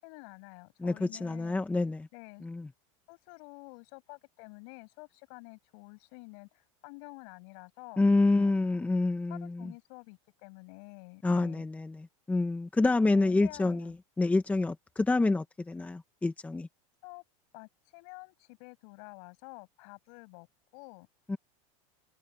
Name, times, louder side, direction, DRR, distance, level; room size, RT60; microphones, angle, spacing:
voice 1, 0.0-1.6 2.1-2.5 3.1-8.1 8.4-8.5 9.3-11.7 13.1-13.9 17.0-17.2 17.5-20.5 20.7-21.1, left 36 dB, 60° left, 7.3 m, -49 dB
voice 2, 0.8-2.1 2.4-2.7 8.0-9.7 11.2-16.7 21.3-21.4, left 2 dB, 10° left, 1.3 m, -28 dB
supercardioid pair, 140°, 17 cm